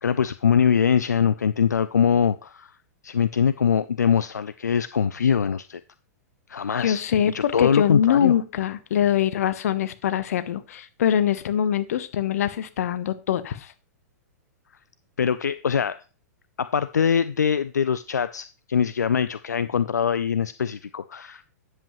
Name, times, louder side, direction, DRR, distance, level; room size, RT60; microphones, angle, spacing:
voice 1, 0.0-2.7 3.0-5.8 6.5-8.4 15.2-16.0 16.6-21.4, left 7 dB, 85° left, 14 dB, 0.4 m, -23 dB
voice 2, 6.8-13.7, left 10 dB, 65° left, 13 dB, 0.9 m, -23 dB
10.0 x 7.7 x 3.1 m, 0.34 s
hypercardioid pair, 110°, 9 cm